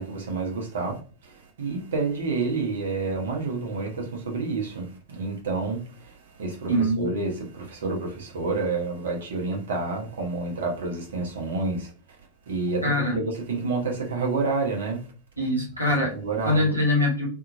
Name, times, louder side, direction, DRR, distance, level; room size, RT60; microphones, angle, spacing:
voice 1, 0.0-6.1 6.4-11.9 12.5-15.0 16.1-16.7, right 3 dB, 60° right, 1.0 m, -29 dB
voice 2, 6.7-7.1 12.8-13.2 15.4-16.1 16.4-17.3, left 1 dB, 85° right, 1.3 m, -23 dB
2.8 x 2.6 x 2.4 m
figure-of-eight pair, 90°, 0 cm